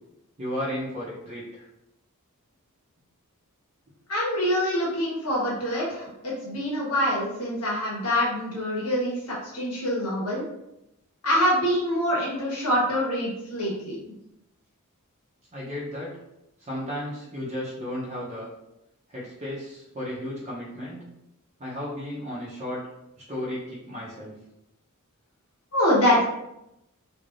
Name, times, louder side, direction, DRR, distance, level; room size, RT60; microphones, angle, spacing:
voice 1, 0.4-1.7 15.5-16.1 16.6-18.5 19.1-21.0 21.6-22.8 23.3-24.3, left 1 dB, 30° right, -8 dB, 0.7 m, -34 dB
voice 2, 4.1-10.4 11.2-14.0 25.7-26.2, equal, 80° left, -5 dB, 1.4 m, -25 dB
3.2 x 2.8 x 2.6 m, 0.86 s
head